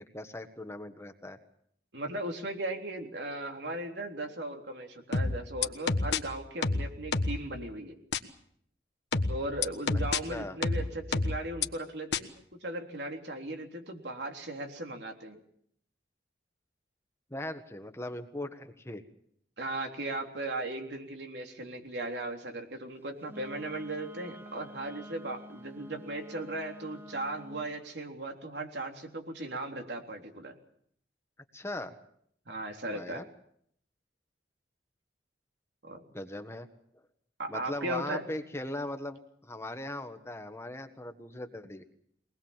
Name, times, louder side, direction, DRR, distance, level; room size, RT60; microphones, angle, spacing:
voice 1, 0.0-1.4 10.3-10.6 17.3-19.0 31.5-31.9 32.9-33.2 36.1-36.7 37.5-41.8, left 1 dB, 15° left, 8 dB, 1.4 m, -39 dB
voice 2, 1.9-8.0 9.3-15.4 19.6-30.6 32.5-33.2 35.8-36.0 37.4-38.2, right 1 dB, 75° right, 3 dB, 3.6 m, -37 dB
sound 1, 5.1-6.2 6.6-7.4 8.1-8.2 9.1-10.2 10.6-11.7 12.1-12.2, left 3 dB, 75° left, 1.4 m, -28 dB
Wind instrument woodwind instrument, 23.3-27.7, right 1 dB, 15° right, 1.3 m, -48 dB
23.5 x 20.0 x 7.3 m, 0.68 s
head